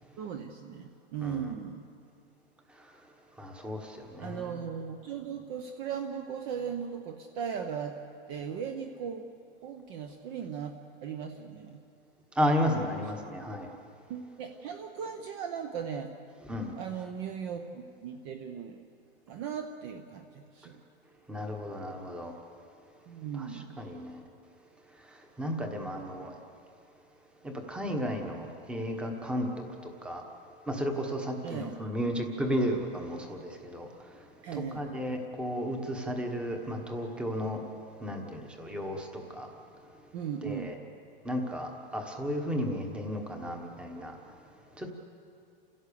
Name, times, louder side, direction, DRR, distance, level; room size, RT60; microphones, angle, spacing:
voice 1, 0.2-1.8 4.2-8.0 8.3-9.3 9.6-11.8 14.1-16.1 16.8-18.8 19.3-20.8 23.1-23.8 31.4-31.7 34.4-35.1 40.1-40.8, right 7 dB, 25° right, 6 dB, 0.8 m, -38 dB
voice 2, 1.2-1.5 3.4-4.6 12.4-13.7 16.4-16.7 21.3-22.4 23.3-24.2 25.4-26.4 27.4-30.2 30.7-33.9 34.5-37.6 38.0-39.5 40.4-40.8 41.2-44.2 44.8-44.9, equal, 5° right, 3 dB, 1.2 m, -33 dB
28.5 x 16.5 x 6.9 m, 2.4 s
supercardioid pair, 175°, 30 cm